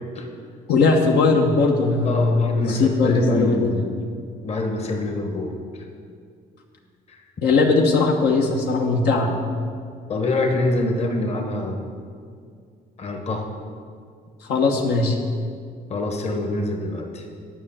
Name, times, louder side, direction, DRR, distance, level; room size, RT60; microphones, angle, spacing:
voice 1, 0.7-3.7 7.4-9.3 14.5-15.2, left 3 dB, 75° left, 1 dB, 1.2 m, -19 dB
voice 2, 2.0-4.0 4.4-5.5 10.1-11.8 13.0-13.4 15.9-17.2, left 2 dB, 40° left, 3 dB, 1.3 m, -25 dB
9.5 x 5.6 x 7.4 m, 2.2 s
cardioid pair, 110°, 17 cm